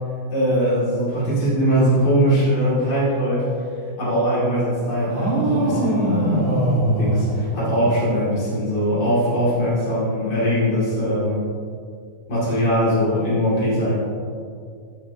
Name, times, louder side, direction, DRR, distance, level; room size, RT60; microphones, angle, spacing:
voice 1, 0.3-3.5 4.0-6.5 7.0-11.4 12.3-13.9, equal, 55° left, -9 dB, 3.1 m, -21 dB
sound 1, 5.1-8.2, right 2 dB, 30° right, 1.4 m, -22 dB
16.0 x 7.0 x 2.9 m, 2.3 s
omnidirectional pair, 2.3 m